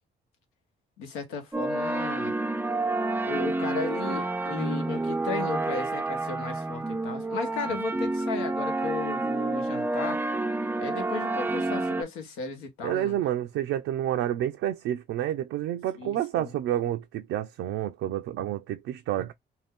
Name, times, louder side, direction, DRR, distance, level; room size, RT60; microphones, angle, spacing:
voice 1, 1.0-2.4 3.2-10.2 10.8-13.2 16.0-16.6, left 4 dB, 90° left, 1.0 m, -35 dB
sound 1, 1.5-12.0, right 2 dB, 10° right, 0.4 m, -29 dB
voice 2, 12.8-19.3, right 12 dB, 75° right, 0.4 m, -29 dB
2.6 x 2.2 x 3.5 m
supercardioid pair, 65°, 21 cm